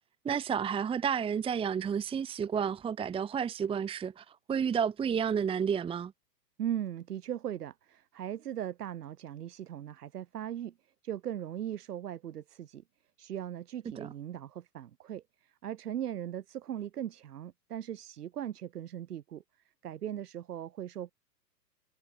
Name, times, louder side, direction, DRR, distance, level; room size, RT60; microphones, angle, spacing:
voice 1, 0.2-6.1 14.0-14.1, right 7 dB, 10° right, 1.3 m, -31 dB
voice 2, 6.6-10.7 11.0-12.8 13.2-19.4 19.8-21.1, right 10 dB, 65° right, 6.7 m, -39 dB
hypercardioid pair, 130°, 49 cm